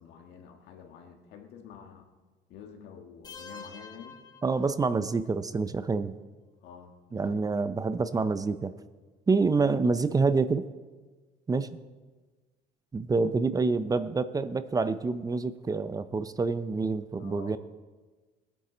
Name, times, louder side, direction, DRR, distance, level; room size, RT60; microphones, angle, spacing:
voice 1, 0.0-2.1 2.5-4.2 6.6-7.4 17.2-17.6, left 7 dB, 80° left, 3 dB, 1.8 m, -48 dB
sound 1, 3.2-5.2, left 4 dB, 25° left, 1.5 m, -47 dB
voice 2, 4.4-6.1 7.1-8.7 9.3-10.6 11.5-11.8 12.9-17.6, right 4 dB, 20° right, 13 dB, 0.6 m, -27 dB
21.5 x 10.0 x 4.0 m, 1.3 s
cardioid pair, 110°, 17 cm